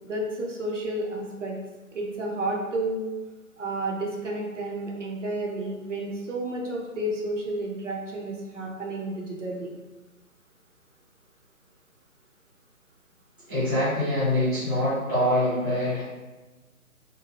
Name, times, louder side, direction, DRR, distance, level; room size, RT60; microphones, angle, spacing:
voice 1, 0.0-1.6 1.9-3.1 3.6-9.7, right 1 dB, 60° right, -1 dB, 0.7 m, -31 dB
voice 2, 13.5-16.0, left 1 dB, 5° left, -22 dB, 0.6 m, -24 dB
2.9 x 2.2 x 2.8 m, 1.2 s
figure-of-eight pair, 145°, 42 cm